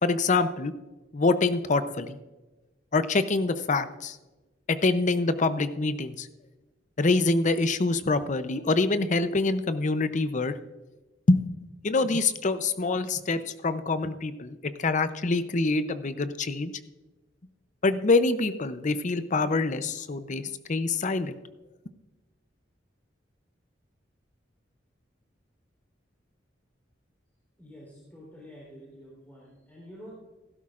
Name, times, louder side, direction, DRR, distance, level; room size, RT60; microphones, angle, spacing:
voice 1, 0.0-0.7 1.1-2.2 2.9-4.2 4.7-6.3 7.0-10.5 11.3-11.4 11.8-16.7 17.8-20.4 20.7-21.4, left 3 dB, 45° left, 12 dB, 0.7 m, -25 dB
voice 2, 27.6-30.2, equal, 10° left, -6 dB, 3.5 m, -48 dB
16.0 x 12.5 x 2.5 m, 1.1 s
head